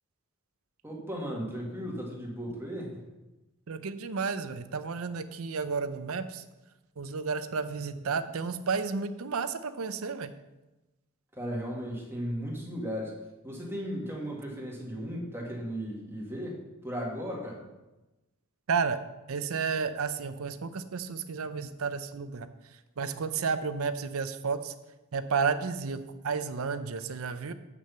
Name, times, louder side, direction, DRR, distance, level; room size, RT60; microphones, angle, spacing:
voice 1, 0.8-3.0 11.3-13.1 13.4-17.6, equal, 10° right, -2 dB, 1.7 m, -36 dB
voice 2, 3.7-6.4 7.0-10.3 18.7-19.0 19.3-22.5 23.0-24.7 25.1-27.5, right 5 dB, 80° right, 11 dB, 0.6 m, -32 dB
7.8 x 6.1 x 5.6 m, 1.0 s
head